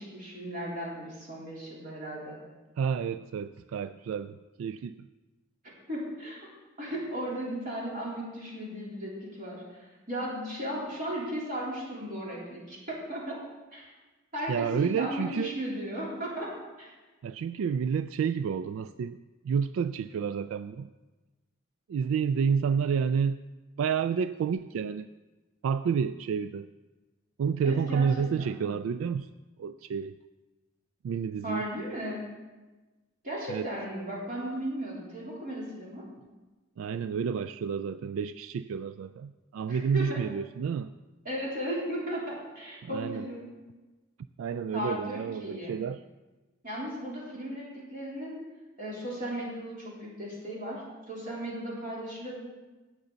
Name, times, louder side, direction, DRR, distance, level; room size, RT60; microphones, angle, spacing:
voice 1, 0.0-2.4 5.6-6.5 6.8-13.4 13.7-13.9 14.3-16.9 27.6-28.6 31.4-32.2 33.2-36.1 39.7-40.3 41.3-43.4 44.7-45.8 46.6-48.4 48.8-52.4, equal, 45° right, -5 dB, 3.6 m, -36 dB
voice 2, 2.8-5.1 14.5-15.5 17.2-19.2 19.4-20.9 21.9-23.4 23.8-25.1 25.6-26.7 27.4-29.3 29.6-30.1 31.0-31.6 33.5-33.7 36.8-40.9 42.8-43.3 44.4-46.0, right 6 dB, 90° right, 12 dB, 0.3 m, -30 dB
17.5 x 6.9 x 4.0 m, 1.2 s
head